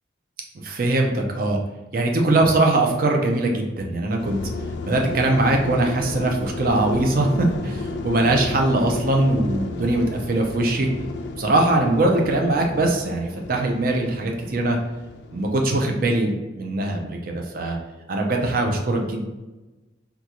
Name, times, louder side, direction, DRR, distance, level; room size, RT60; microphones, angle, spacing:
voice 1, 0.6-1.6 1.9-4.4 4.8-10.9 11.4-14.8 15.3-17.8 18.1-19.3, right 2 dB, 50° right, 2 dB, 0.5 m, -21 dB
sound 1, 4.2-15.5, left 3 dB, 65° left, 0.3 m, -33 dB
3.7 x 2.3 x 2.9 m, 1.1 s
head